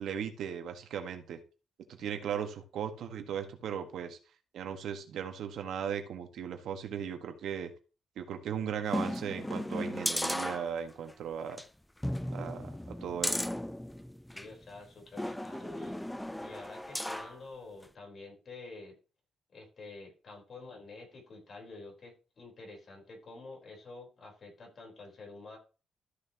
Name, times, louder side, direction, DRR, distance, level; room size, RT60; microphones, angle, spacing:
voice 1, 0.0-1.4 1.9-4.2 4.5-7.7 8.2-11.6 12.3-13.4, right 8 dB, 75° right, 6 dB, 1.5 m, -37 dB
sound 1, 8.9-11.1 11.5-11.6 12.0-14.5 15.2-17.4 17.8-17.9, left 1 dB, 5° left, 0.4 m, -35 dB
voice 2, 14.3-16.0 16.4-18.9 19.5-25.6, left 3 dB, 45° left, -1 dB, 4.3 m, -48 dB
13.5 x 6.5 x 3.0 m, 0.34 s
cardioid pair, 130°, 0 cm